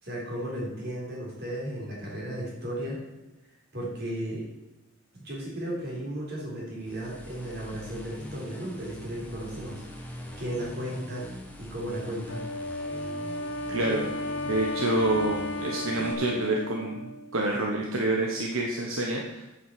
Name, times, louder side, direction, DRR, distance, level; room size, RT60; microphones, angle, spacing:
voice 1, 0.0-3.0 3.4-4.5 5.1-11.3 11.6-12.4, right 1 dB, 50° right, -4 dB, 3.9 m, -35 dB
sound 1, 6.8-16.1, equal, 5° left, 1.2 m, -43 dB
Wind instrument woodwind instrument, 12.3-17.7, left 1 dB, 60° left, 1.3 m, -34 dB
voice 2, 13.7-14.1 14.4-19.5, right 2 dB, 75° right, 0 dB, 1.1 m, -28 dB
8.2 x 6.1 x 7.7 m, 0.99 s
head